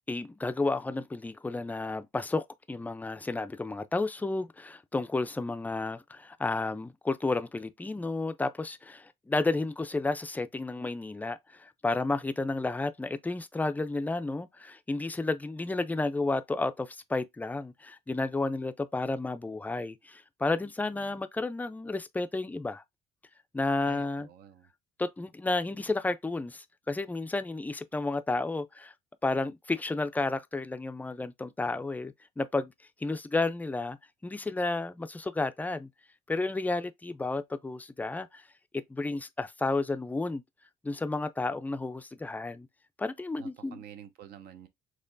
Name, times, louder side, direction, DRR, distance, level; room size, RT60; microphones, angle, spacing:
voice 1, 0.1-22.8 23.5-24.3 25.0-28.9 29.2-32.7 33.0-34.0 34.2-35.9 36.3-38.4 38.7-40.4 40.8-42.7 43.0-43.8, left 3 dB, 10° left, 0.4 m, -32 dB
voice 2, 23.8-24.7 43.4-44.7, right 10 dB, 70° right, 0.8 m, -49 dB
4.4 x 3.0 x 2.5 m
cardioid pair, 110°, 17 cm